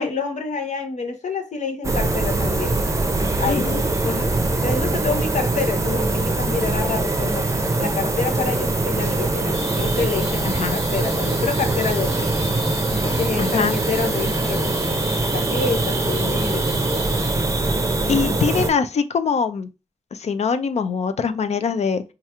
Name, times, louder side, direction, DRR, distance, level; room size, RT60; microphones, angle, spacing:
voice 1, 0.0-2.8 3.4-3.7 4.0-4.3 4.6-12.3 12.9-14.9 15.3-17.2 18.0-18.4, left 4 dB, 80° left, 0.8 m, -28 dB
sound 1, 1.8-18.7, right 2 dB, 25° right, 0.5 m, -22 dB
voice 2, 3.5-3.8 10.4-10.8 13.4-13.8 18.1-19.7 20.1-22.0, left 5 dB, 65° left, 0.4 m, -23 dB
sound 2, 9.5-17.3, left 1 dB, 45° left, 1.6 m, -35 dB
4.5 x 2.4 x 2.8 m
wide cardioid pair, 140°, 12 cm